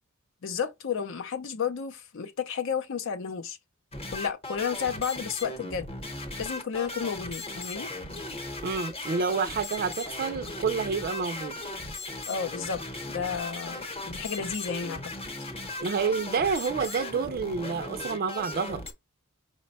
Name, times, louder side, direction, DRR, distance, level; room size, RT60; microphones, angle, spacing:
voice 1, 0.4-3.6 4.1-5.9 6.4-7.9 12.3-15.0, left 6 dB, 65° left, 0.6 m, -32 dB
sound 1, 3.9-18.9, left 2 dB, 25° left, 0.9 m, -37 dB
voice 2, 8.6-11.6 15.8-18.8, right 5 dB, 45° right, 0.4 m, -29 dB
5.0 x 2.2 x 4.0 m
head